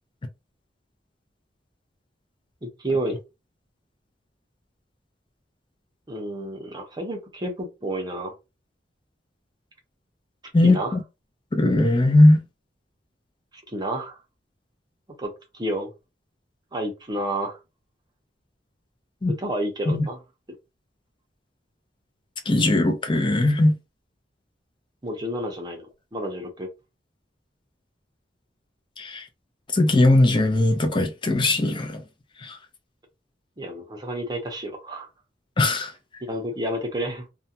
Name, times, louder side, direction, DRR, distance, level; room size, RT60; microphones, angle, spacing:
voice 1, 2.6-3.2 6.1-8.3 10.6-11.0 13.7-14.2 15.2-15.9 16.7-17.6 19.3-20.2 25.0-25.8 26.1-26.7 33.6-35.1 36.2-37.3, right 1 dB, 25° right, 0.6 m, -30 dB
voice 2, 10.5-11.0 11.5-12.4 19.2-19.3 19.9-20.1 22.5-23.8 29.0-29.2 29.7-32.0 32.4-32.6 35.6-35.9, left 2 dB, 30° left, 0.5 m, -19 dB
2.4 x 2.2 x 2.7 m
head